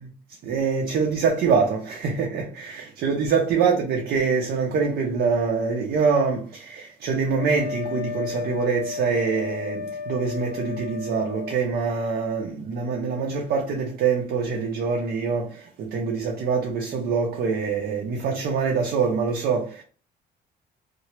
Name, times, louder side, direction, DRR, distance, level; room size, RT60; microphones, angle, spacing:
voice 1, 0.3-19.8, right 5 dB, 60° right, 0.6 m, -24 dB
Wind instrument woodwind instrument, 7.3-11.6, left 5 dB, 70° left, 0.7 m, -33 dB
2.8 x 2.0 x 3.1 m
cardioid pair, 110°, 17 cm